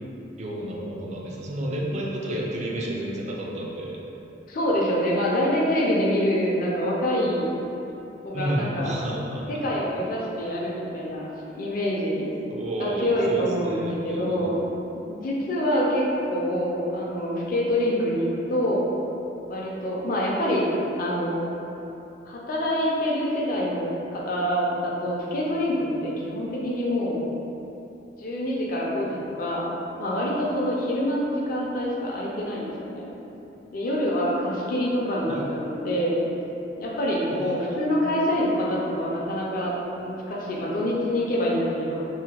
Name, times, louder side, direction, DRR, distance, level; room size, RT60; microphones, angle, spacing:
voice 1, 0.4-4.0 8.3-9.5 12.5-14.5 35.3-35.5 37.3-38.2, right 1 dB, 40° right, -3 dB, 0.4 m, -31 dB
voice 2, 4.5-7.5 8.2-8.9 9.5-11.3 11.5-12.3 12.8-14.6 15.1-16.0 16.3-18.9 19.5-20.6 21.0-21.5 22.3-27.2 28.2-29.7 30.0-33.1 33.7-36.2 36.8-39.7 40.0-42.0, equal, 50° left, -4 dB, 0.4 m, -26 dB
2.8 x 2.1 x 2.8 m, 3.0 s
head